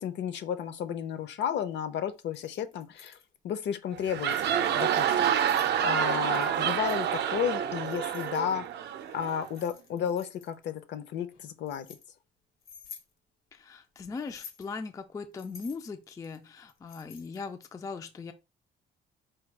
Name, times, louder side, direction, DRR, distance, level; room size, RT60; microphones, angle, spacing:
voice 1, 0.0-3.2 3.4-5.3 5.8-8.6 9.1-11.9, left 8 dB, 60° left, 0.7 m, -33 dB
Keys jangling, 2.2-3.2 4.0-4.5 5.2-5.7 6.3-7.0 7.9-8.7 9.2-10.6 11.3-12.0 12.6-13.1 14.2-14.7 15.4-17.5, left 7 dB, 80° left, 1.2 m, -51 dB
sound 1, 3.9-9.5, right 9 dB, 55° right, 0.5 m, -28 dB
voice 2, 13.5-18.3, left 4 dB, 15° left, 0.3 m, -39 dB
4.7 x 2.3 x 4.5 m
cardioid pair, 160°, 21 cm